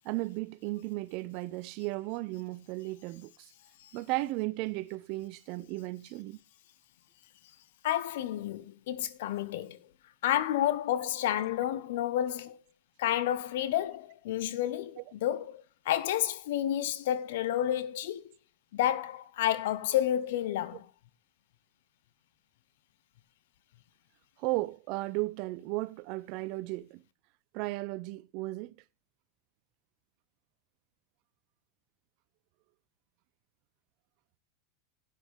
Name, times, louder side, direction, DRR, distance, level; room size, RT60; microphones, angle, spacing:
voice 1, 0.0-3.5 3.9-6.4 15.0-15.1 24.4-27.0 27.5-28.7, right 20 dB, 55° right, 0.6 m, -35 dB
voice 2, 7.8-9.8 10.2-12.6 13.0-18.3 18.7-20.9, left 12 dB, 70° left, 1.0 m, -30 dB
12.0 x 9.3 x 3.5 m
hypercardioid pair, 95°, 0 cm